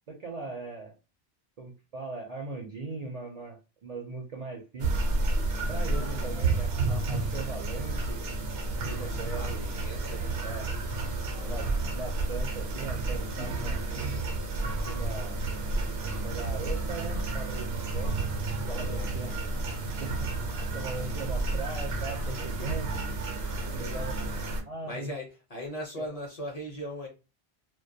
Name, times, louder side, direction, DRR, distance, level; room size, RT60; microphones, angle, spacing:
voice 1, 0.1-1.0 1.6-5.0 5.7-8.2 8.9-9.4 10.4-10.7 11.4-11.7 11.9-13.8 14.8-15.4 16.2-18.2 18.7-19.4 19.8-20.3 20.7-23.1 23.8-24.2 24.7-25.1 26.0-26.1, right 3 dB, 50° right, 0.5 m, -39 dB
sound 1, 4.8-24.6, right 2 dB, 75° right, 0.8 m, -31 dB
voice 2, 5.8-6.3 9.0-12.0 18.7-19.2 23.6-24.1 24.8-27.1, equal, 45° left, 0.7 m, -41 dB
2.2 x 2.1 x 2.6 m
omnidirectional pair, 1.1 m